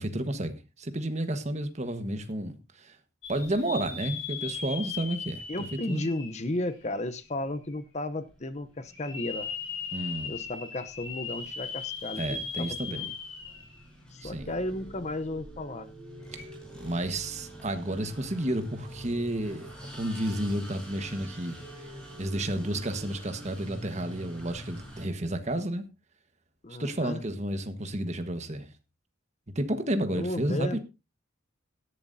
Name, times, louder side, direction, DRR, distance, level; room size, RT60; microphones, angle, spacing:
voice 1, 0.0-2.9 3.3-6.1 9.9-10.4 12.2-13.1 14.2-14.5 16.3-16.4 16.8-19.7 20.0-21.6 22.2-25.8 26.8-28.7 29.5-30.8, right 1 dB, 35° right, 1.4 m, -31 dB
sound 1, 3.2-7.2 7.7-7.8 8.9-13.8 14.2-14.3 16.3-16.4, left 5 dB, 70° left, 3.9 m, -38 dB
voice 2, 5.5-9.5 10.2-13.1 14.1-15.9 26.6-27.2 30.1-30.8, left 1 dB, 35° left, 0.8 m, -34 dB
sound 2, 6.3-6.4 6.8-25.1, equal, 5° left, 6.1 m, -47 dB
sound 3, 14.4-24.4, right 3 dB, 60° right, 4.2 m, -51 dB
17.0 x 11.0 x 2.7 m
head